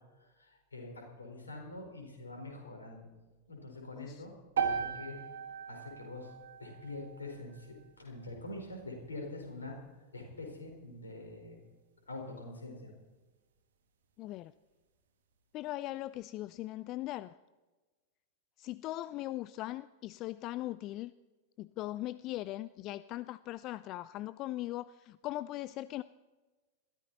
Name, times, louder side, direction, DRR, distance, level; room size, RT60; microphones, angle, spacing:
voice 1, 0.2-3.1 3.5-5.2 5.7-6.3 6.6-9.8 10.1-11.5 12.1-12.9, left 2 dB, 75° left, 1 dB, 4.7 m, -45 dB
sound 1, 4.6-8.7, right 7 dB, 65° right, 1.9 m, -38 dB
voice 2, 14.2-14.5 15.5-17.3 18.6-21.1 21.6-26.0, left 16 dB, 40° left, 17 dB, 0.4 m, -39 dB
21.5 x 15.0 x 4.2 m, 1.2 s
figure-of-eight pair, 90°, 0 cm